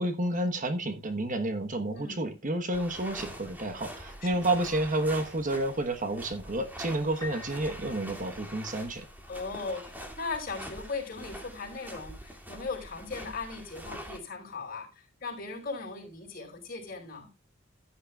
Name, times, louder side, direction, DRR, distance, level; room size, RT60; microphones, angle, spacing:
voice 1, 0.0-9.1, right 1 dB, 40° right, 1.2 m, -30 dB
voice 2, 1.9-2.3 4.2-4.6 9.3-17.3, left 4 dB, 50° left, 4.9 m, -38 dB
sound 1, 2.7-14.2, equal, 10° right, 2.3 m, -45 dB
Piano, 7.2-9.0, left 3 dB, 20° left, 4.8 m, -47 dB
15.0 x 9.8 x 2.3 m
head